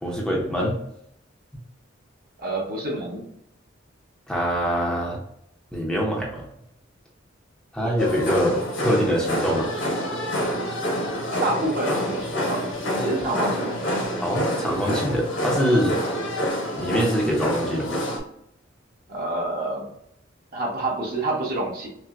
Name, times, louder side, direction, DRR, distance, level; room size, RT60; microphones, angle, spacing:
voice 1, 0.0-0.8 4.3-5.2 5.7-6.4 7.7-9.7 14.2-16.0 16.8-17.9, equal, 5° left, -2 dB, 0.6 m, -24 dB
voice 2, 2.4-3.2 11.4-13.8 19.1-19.9 20.5-21.9, right 2 dB, 50° right, -2 dB, 1.1 m, -27 dB
sound 1, 8.0-18.2, equal, 70° left, 1.2 m, -27 dB
5.7 x 2.0 x 2.4 m, 0.74 s
head